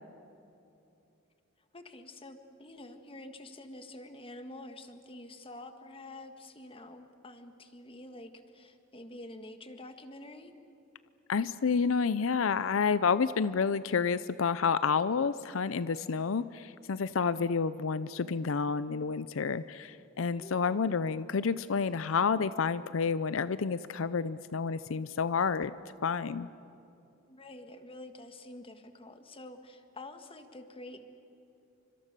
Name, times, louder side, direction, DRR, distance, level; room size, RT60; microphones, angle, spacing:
voice 1, 1.7-10.5 20.3-20.9 27.3-31.1, left 1 dB, 30° left, 7 dB, 1.7 m, -48 dB
voice 2, 11.3-25.7 26.0-26.5, left 5 dB, 75° left, 15 dB, 0.6 m, -29 dB
29.5 x 25.5 x 6.8 m, 2.7 s
head